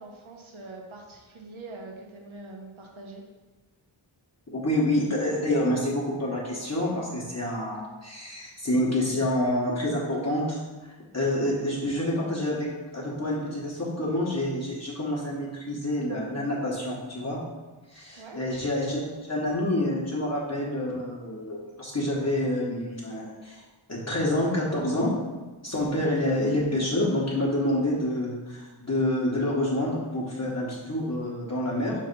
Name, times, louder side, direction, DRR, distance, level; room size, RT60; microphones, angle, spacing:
voice 1, 0.0-3.2 18.2-18.4, right 2 dB, 80° right, 1 dB, 1.1 m, -43 dB
voice 2, 4.5-12.7 12.9-17.4 17.9-23.6 23.9-25.1 25.6-31.9, left 1 dB, 35° left, -5 dB, 1.2 m, -28 dB
5.5 x 3.2 x 5.3 m, 1.2 s
wide cardioid pair, 105°, 47 cm